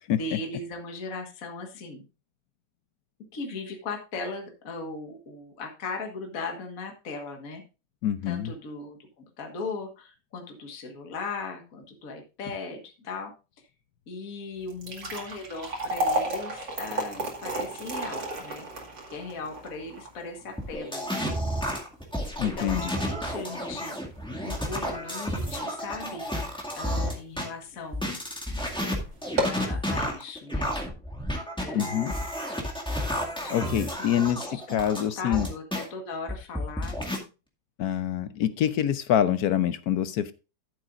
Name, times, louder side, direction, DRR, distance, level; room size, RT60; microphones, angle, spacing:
voice 1, 0.2-2.0 3.3-7.6 8.3-13.7 14.1-18.8 19.1-21.4 22.6-23.9 24.4-26.3 26.8-28.0 29.4-30.7 31.6-32.2 33.4-37.2, left 3 dB, 50° left, 3 dB, 1.9 m, -38 dB
voice 2, 8.0-8.5 22.4-22.8 31.7-32.1 33.5-34.4 34.7-35.5 37.8-40.3, left 10 dB, 65° left, 13 dB, 1.0 m, -25 dB
sound 1, 14.6-26.9 27.3-27.4 28.1-28.3 28.6-28.7 29.2-29.7, right 1 dB, 70° right, 3.0 m, -33 dB
sound 2, 20.6-27.5 27.9-35.8 36.3-37.2, equal, 5° left, 1.9 m, -31 dB
13.5 x 7.9 x 2.5 m, 0.30 s
omnidirectional pair, 2.0 m